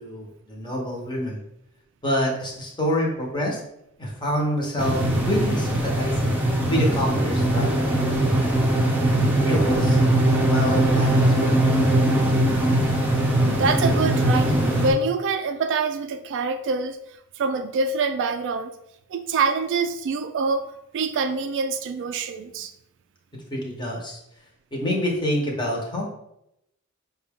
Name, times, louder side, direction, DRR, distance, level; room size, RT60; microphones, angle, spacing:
voice 1, 0.0-1.4 2.0-3.6 4.0-6.4 6.7-8.7 9.5-12.0 23.3-24.2 24.7-26.1, equal, 20° left, -1 dB, 0.9 m, -27 dB
sound 1, 4.8-14.9, right 1 dB, 10° right, 0.7 m, -21 dB
voice 2, 13.4-17.0 17.4-18.7 19.1-22.7, right 4 dB, 60° right, 9 dB, 0.3 m, -25 dB
5.6 x 2.3 x 3.5 m, 0.81 s
head